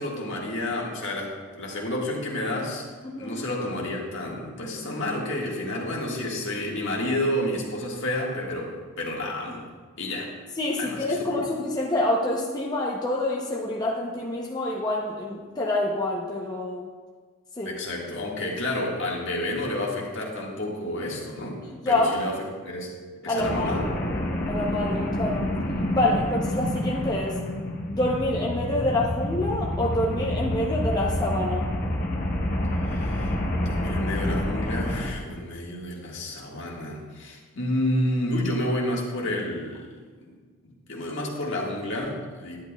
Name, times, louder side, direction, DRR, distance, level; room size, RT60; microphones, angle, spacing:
voice 1, 0.0-2.8 3.2-9.6 10.0-10.3 10.8-11.4 17.7-22.9 23.2-23.8 32.8-33.3 33.7-39.9 40.2-40.3 40.6-42.6, left 1 dB, 60° left, -2 dB, 1.8 m, -30 dB
voice 2, 10.6-16.9 17.6-17.7 21.8-22.1 23.3-23.7 24.5-25.5 25.9-27.4 27.9-31.7, left 1 dB, 20° left, -3 dB, 0.7 m, -27 dB
sound 1, 23.4-35.1, left 1 dB, 40° left, 1.1 m, -28 dB
11.0 x 10.5 x 2.3 m, 1.5 s
head